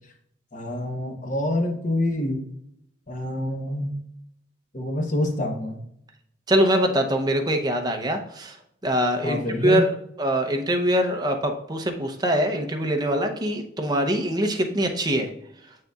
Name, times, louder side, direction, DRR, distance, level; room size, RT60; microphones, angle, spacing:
voice 1, 0.5-2.4 3.1-3.9 4.7-5.8 9.2-9.8, left 1 dB, 40° left, 3 dB, 1.0 m, -26 dB
voice 2, 6.5-8.6 8.8-9.9 10.2-15.3, equal, 20° right, 4 dB, 0.7 m, -23 dB
6.8 x 6.5 x 2.4 m, 0.75 s
head